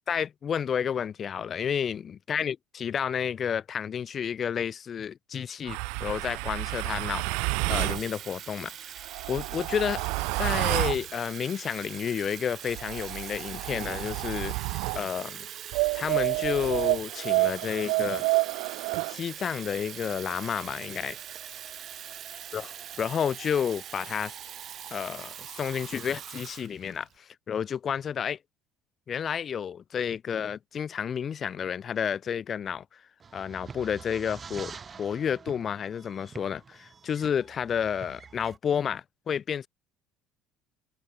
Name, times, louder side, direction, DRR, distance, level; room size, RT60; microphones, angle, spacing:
voice 1, 0.0-8.9 9.3-10.0 10.4-15.5 15.9-18.2 19.1-21.2 22.5-22.7 23.0-24.3 24.9-28.4 29.1-33.0 33.3-39.7, left 8 dB, 35° left, 2.4 m, -31 dB
sound 1, 5.7-8.0 9.0-11.0 12.7-15.0 15.7-19.2, right 33 dB, 85° right, 1.8 m, -29 dB
Water tap faucet / Fill (with liquid), 7.4-27.1, right 10 dB, 45° right, 4.0 m, -42 dB
sound 2, 33.2-38.6, right 5 dB, 25° right, 2.5 m, -46 dB
open air
cardioid pair, 125°, 0 cm